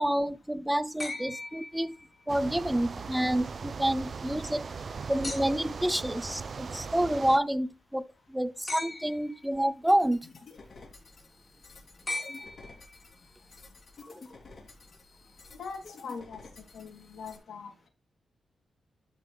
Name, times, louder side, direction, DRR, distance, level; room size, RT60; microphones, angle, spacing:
voice 1, 0.0-2.0 2.3-4.7 5.1-10.2, right 1 dB, 5° right, 0.5 m, -28 dB
sound 1, 1.0-2.4 5.2-5.9 8.7-9.5 12.1-13.1 14.7-14.8, left 2 dB, 30° left, 3.4 m, -39 dB
sound 2, 2.3-7.4, right 5 dB, 50° right, 0.6 m, -39 dB
sound 3, 9.9-17.4, left 3 dB, 50° left, 3.0 m, -51 dB
voice 2, 15.6-16.4 16.7-17.9, left 5 dB, 80° left, 3.2 m, -41 dB
12.5 x 5.3 x 3.4 m
wide cardioid pair, 120°, 0 cm